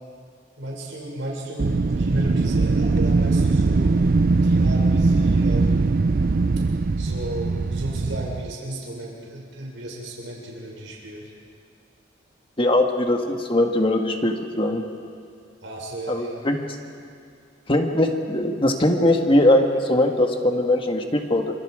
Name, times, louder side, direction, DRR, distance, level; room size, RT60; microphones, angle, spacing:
voice 1, 0.6-3.9 4.4-5.9 7.0-11.3 15.6-16.4, right 1 dB, 75° right, -3 dB, 6.4 m, -34 dB
Wind, 1.6-8.5, right 3 dB, 45° right, 0.5 m, -20 dB
voice 2, 12.6-14.8 16.1-16.6 17.7-21.5, left 1 dB, 25° left, 3 dB, 1.7 m, -20 dB
28.0 x 26.0 x 5.0 m, 2.3 s
head